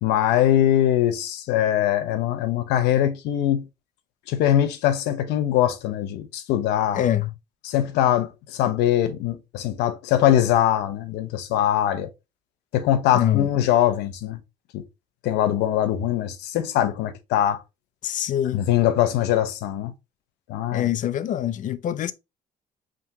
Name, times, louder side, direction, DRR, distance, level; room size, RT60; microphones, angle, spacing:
voice 1, 0.0-3.7 4.3-7.0 7.6-12.1 12.7-14.4 14.7-14.8 15.2-17.6 18.5-19.9 20.5-20.9, left 11 dB, 90° left, 0.9 m, -22 dB
voice 2, 6.9-7.3 13.1-13.5 18.0-18.6 20.7-22.1, left 11 dB, 50° left, 0.5 m, -24 dB
5.1 x 3.6 x 2.7 m
cardioid pair, 110°, 17 cm